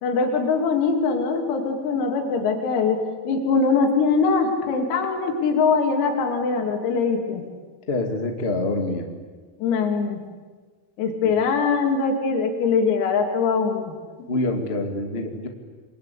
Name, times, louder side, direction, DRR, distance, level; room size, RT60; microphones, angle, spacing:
voice 1, 0.0-7.4 9.6-10.2 11.0-13.9, left 5 dB, 90° left, 3 dB, 5.7 m, -22 dB
voice 2, 7.9-9.1 11.2-11.3 14.3-15.5, left 2 dB, 50° left, 3 dB, 0.7 m, -26 dB
28.5 x 22.5 x 8.6 m, 1.4 s
omnidirectional pair, 5.9 m